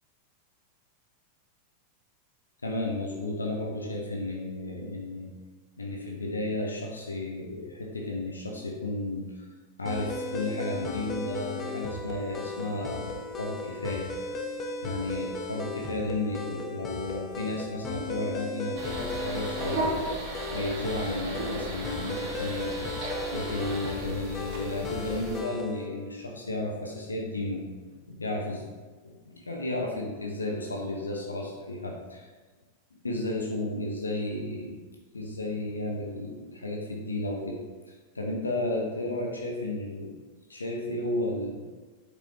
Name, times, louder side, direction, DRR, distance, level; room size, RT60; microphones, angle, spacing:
voice 1, 2.6-5.3 5.8-9.5 9.8-14.1 14.8-22.9 23.3-28.7 29.0-32.3 32.9-34.8 35.1-37.6 37.9-40.2 40.5-41.7, left 2 dB, 75° left, 0 dB, 1.1 m, -33 dB
sound 1, 9.9-25.9, left 3 dB, 20° left, 1.0 m, -36 dB
sound 2, 18.8-25.4, right 1 dB, 45° right, 1.9 m, -35 dB
8.6 x 6.7 x 2.9 m, 1.3 s
figure-of-eight pair, 90°, 0 cm